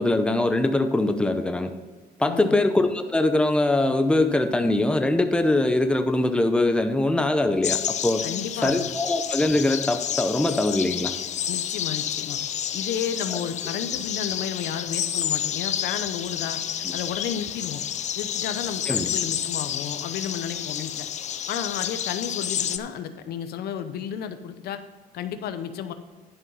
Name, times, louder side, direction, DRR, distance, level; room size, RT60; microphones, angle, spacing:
voice 1, 0.0-1.7 2.2-8.2 8.6-11.1 18.9-19.1, left 2 dB, 5° left, 7 dB, 0.7 m, -22 dB
voice 2, 2.3-2.6 8.2-8.9 11.5-12.4 12.7-16.6 16.9-17.8 18.2-21.1 21.5-24.8 25.1-25.9, left 8 dB, 70° left, 9 dB, 0.8 m, -32 dB
sound 1, 7.6-22.8, left 9 dB, 45° left, 0.5 m, -30 dB
11.0 x 5.5 x 5.4 m, 1.4 s
cardioid pair, 110°, 17 cm